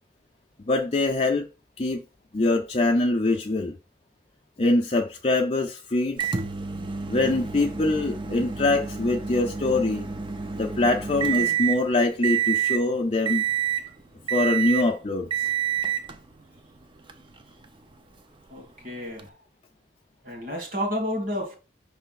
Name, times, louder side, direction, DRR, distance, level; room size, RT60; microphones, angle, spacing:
voice 1, 0.7-1.5 1.8-2.0 2.3-3.8 4.6-6.3 7.1-10.0 10.5-13.5 14.3-15.3, left 2 dB, 35° left, 0.5 m, -23 dB
Microwave oven, 6.2-11.8 12.2-12.8 13.2-13.9 14.3-14.9 15.3-16.1 17.1-17.2 19.2-19.3, right 8 dB, 25° right, 0.5 m, -28 dB
voice 2, 18.5-19.3 20.2-21.6, equal, 45° right, 1.8 m, -31 dB
5.6 x 3.3 x 5.7 m
head